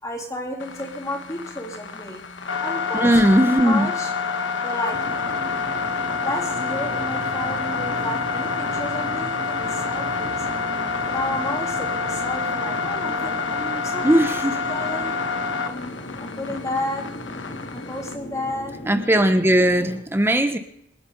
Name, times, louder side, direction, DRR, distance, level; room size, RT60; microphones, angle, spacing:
voice 1, 0.0-2.2 2.6-4.1 4.6-5.0 6.2-10.4 11.1-15.1 15.6-17.0 17.7-18.7, left 1 dB, 20° left, -3 dB, 3.4 m, -32 dB
sound 1, 0.6-18.2, left 4 dB, 85° left, 1.3 m, -28 dB
voice 2, 2.9-3.9 14.0-14.6 18.9-20.6, right 1 dB, 15° right, 7 dB, 1.1 m, -18 dB
sound 2, 4.9-20.0, left 1 dB, 70° left, 2.1 m, -36 dB
26.5 x 9.2 x 4.0 m, 0.73 s
head